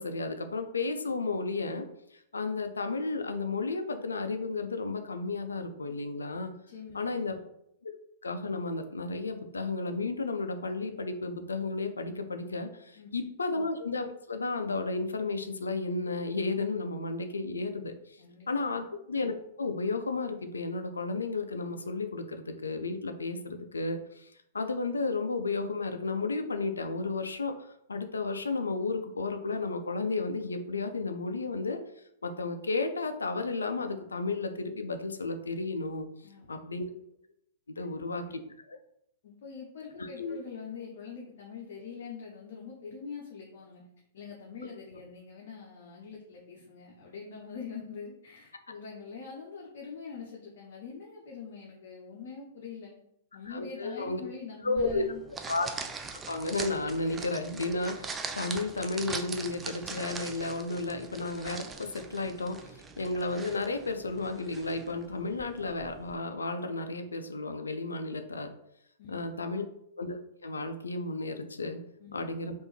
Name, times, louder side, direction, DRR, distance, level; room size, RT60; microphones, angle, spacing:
voice 1, 0.0-1.9 2.3-6.5 6.9-7.3 7.8-7.9 8.2-31.8 32.2-36.1 36.5-36.9 37.8-38.4 38.7-38.8 40.0-40.4 53.5-54.2 54.6-55.0 55.5-55.7 56.3-68.5 69.1-69.6 70.0-71.8 72.1-72.5, left 3 dB, 85° left, 7 dB, 0.4 m, -33 dB
voice 2, 6.7-7.0 13.0-13.2 18.2-18.5 36.2-36.6 37.8-38.4 39.2-43.8 44.1-52.9 53.3-55.2 69.0-69.4 72.0-72.3, left 5 dB, 60° left, -2 dB, 0.8 m, -44 dB
sound 1, 54.8-66.2, right 4 dB, 15° right, 0.3 m, -42 dB
3.4 x 2.6 x 3.1 m, 0.76 s
hypercardioid pair, 115°, 0 cm